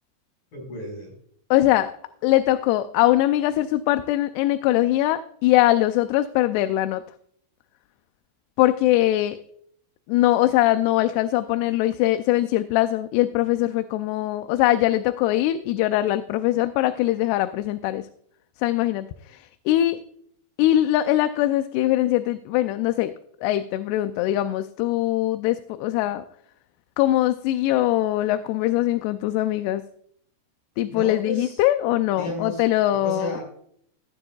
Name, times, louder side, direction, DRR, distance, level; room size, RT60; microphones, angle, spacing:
voice 1, 0.5-1.1 30.9-31.6 32.1-32.6 32.9-33.4, left 1 dB, 60° left, 0 dB, 6.8 m, -33 dB
voice 2, 1.5-1.9 2.2-7.0 8.6-9.4 10.1-18.0 18.6-20.0 20.6-23.1 23.4-26.2 27.0-29.8 30.8-33.4, left 14 dB, 85° left, 10 dB, 2.6 m, -22 dB
16.0 x 11.0 x 2.3 m, 0.68 s
omnidirectional pair, 4.7 m